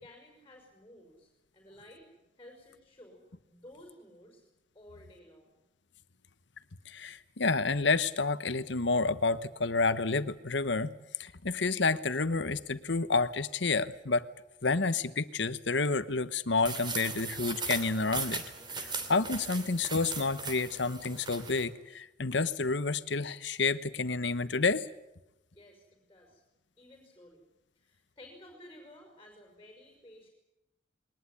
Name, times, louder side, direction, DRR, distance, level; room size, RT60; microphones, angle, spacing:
voice 1, 0.0-2.1 2.4-4.4 4.7-5.6 25.5-26.4 26.8-27.4 27.8-30.3, left 1 dB, 15° left, 2 dB, 5.6 m, -54 dB
voice 2, 6.9-10.9 11.2-14.3 14.6-18.4 19.1-24.9, left 3 dB, 65° left, 13 dB, 1.1 m, -29 dB
sound 1, 16.6-21.6, right 4 dB, 25° right, 2.9 m, -38 dB
21.5 x 20.0 x 9.9 m, 0.92 s
head